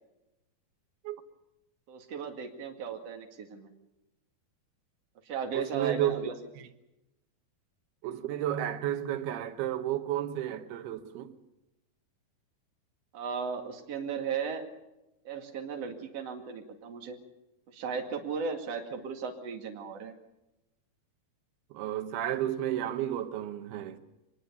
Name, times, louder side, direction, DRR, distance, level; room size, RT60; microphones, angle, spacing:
voice 1, 1.9-3.7 5.2-6.3 13.1-14.6 15.2-17.2 17.7-20.1, right 6 dB, 45° right, 2.9 m, -36 dB
voice 2, 5.5-6.2 8.0-11.3 21.7-24.0, right 12 dB, 90° right, 3.1 m, -32 dB
24.0 x 20.5 x 7.0 m
omnidirectional pair, 4.3 m